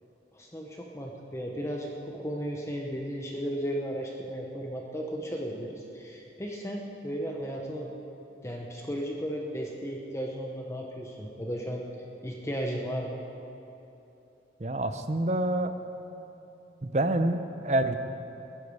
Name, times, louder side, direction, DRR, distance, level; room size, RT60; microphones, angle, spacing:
voice 1, 0.3-7.9 8.4-11.8 12.2-13.2, equal, 15° left, 0 dB, 0.9 m, -35 dB
voice 2, 14.6-15.7 16.8-18.0, right 1 dB, 40° right, 9 dB, 0.7 m, -27 dB
21.0 x 10.5 x 4.8 m, 2.9 s
head